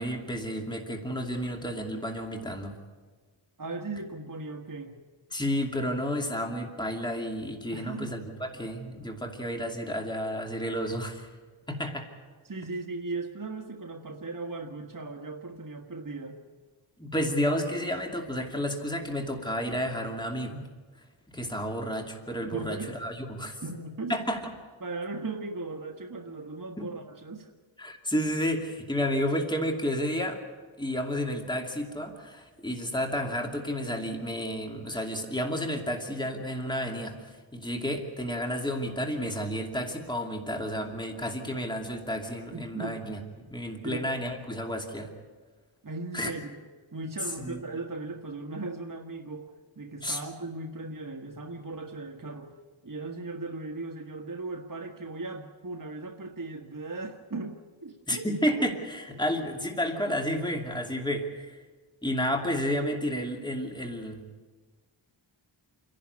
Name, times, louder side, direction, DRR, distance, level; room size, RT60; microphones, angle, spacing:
voice 1, 0.0-2.7 5.3-11.3 11.7-12.1 17.0-20.6 21.3-23.6 24.1-24.4 26.8-26.9 27.8-30.4 30.8-43.2 43.5-45.1 46.1-46.3 47.4-47.6 50.0-50.2 58.1-61.6 62.0-64.2, equal, 10° left, 2 dB, 2.6 m, -31 dB
voice 2, 3.6-5.0 7.7-8.1 11.7-11.8 12.4-16.4 22.4-22.9 23.6-24.1 24.8-27.5 42.5-43.0 43.8-44.1 45.8-46.6 46.9-52.5 52.8-58.3 59.2-59.4, right 3 dB, 40° right, 3 dB, 1.5 m, -38 dB
28.0 x 11.5 x 9.7 m, 1.4 s
wide cardioid pair, 50°, 49 cm